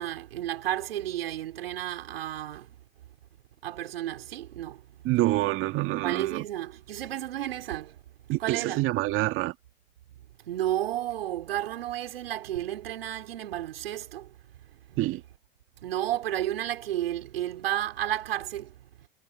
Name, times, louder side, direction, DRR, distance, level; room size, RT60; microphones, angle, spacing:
voice 1, 0.0-2.7 3.6-4.8 6.0-7.9 8.4-8.8 10.5-14.3 15.8-18.7, right 12 dB, 80° right, 3.6 m, -32 dB
voice 2, 5.0-6.5 8.3-9.5 15.0-15.2, right 18 dB, 45° right, 2.2 m, -26 dB
hypercardioid pair, 100°, 29 cm